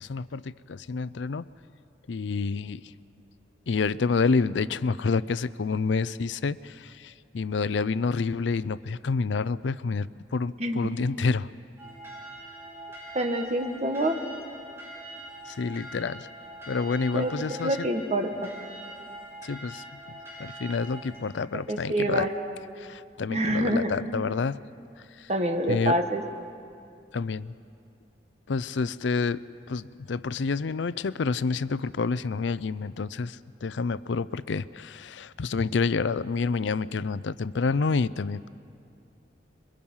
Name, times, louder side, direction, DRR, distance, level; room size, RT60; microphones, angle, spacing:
voice 1, 0.0-1.5 2.1-2.8 3.7-11.5 15.5-16.3 16.7-17.9 19.4-19.8 20.4-22.3 22.8-24.6 25.2-25.3 25.7-26.0 27.1-27.5 28.5-29.4 29.7-38.5, left 4 dB, 80° left, 17 dB, 0.5 m, -28 dB
sound 1, 11.8-21.2, right 1 dB, 15° right, 7.9 m, -43 dB
voice 2, 13.1-14.2 17.1-17.3 17.6-18.5 21.7-22.3 23.3-23.9 25.3-26.2, right 1 dB, 35° right, 5 dB, 1.5 m, -26 dB
27.0 x 22.5 x 5.6 m, 2.4 s
head